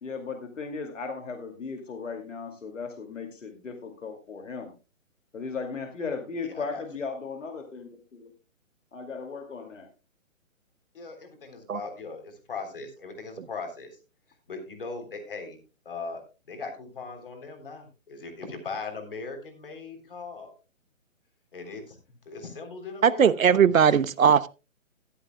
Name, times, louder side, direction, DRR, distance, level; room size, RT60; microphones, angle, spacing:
voice 1, 0.0-4.7 5.3-8.3 8.9-9.9, left 4 dB, 65° left, 5 dB, 2.5 m, -36 dB
voice 2, 10.9-14.0 14.5-15.6 15.9-20.5 21.5-22.0 22.3-23.6, left 4 dB, 40° left, 5 dB, 3.5 m, -39 dB
voice 3, 23.0-24.5, right 7 dB, 75° right, 18 dB, 0.9 m, -19 dB
14.0 x 14.0 x 2.2 m, 0.30 s
hypercardioid pair, 180°, 41 cm